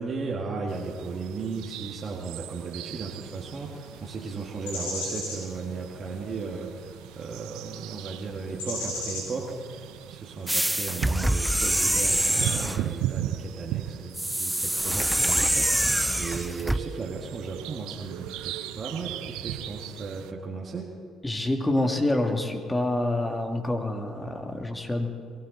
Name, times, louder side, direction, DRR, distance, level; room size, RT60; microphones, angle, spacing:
voice 1, 0.0-20.9, right 4 dB, 45° right, -1 dB, 1.9 m, -36 dB
sound 1, 0.7-20.3, right 13 dB, 75° right, 0.5 m, -38 dB
sound 2, 3.7-4.0 4.7-5.4 6.4-6.5 7.3-7.4 7.7-8.0 8.6-9.3 9.8-9.9, left 1 dB, 90° left, 4.5 m, -34 dB
sound 3, 10.5-12.9 14.1-16.8, right 1 dB, 10° right, 0.6 m, -25 dB
voice 2, 21.2-25.1, left 1 dB, 15° left, 4 dB, 2.3 m, -27 dB
23.0 x 15.0 x 4.0 m, 2.2 s
hypercardioid pair, 55°, 0 cm